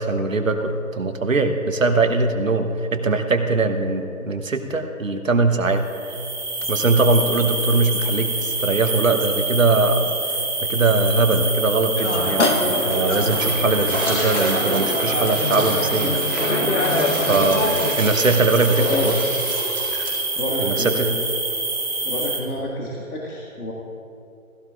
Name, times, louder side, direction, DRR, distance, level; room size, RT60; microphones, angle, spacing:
voice 1, 0.0-5.8 6.7-10.1 10.6-16.1 17.3-17.7 18.0-19.2 20.6-21.1, right 3 dB, 65° right, 6 dB, 1.2 m, -21 dB
sound 1, 5.8-22.4, right 3 dB, 30° right, 1.2 m, -26 dB
sound 2, 12.0-18.0, left 2 dB, 55° left, 1.2 m, -24 dB
sound 3, 13.1-20.1, right 1 dB, 5° left, 1.4 m, -31 dB
voice 2, 18.8-19.1 20.4-21.4 22.0-23.7, left 1 dB, 85° left, -4 dB, 2.0 m, -28 dB
16.0 x 15.0 x 2.5 m, 2.6 s
figure-of-eight pair, 180°, 43 cm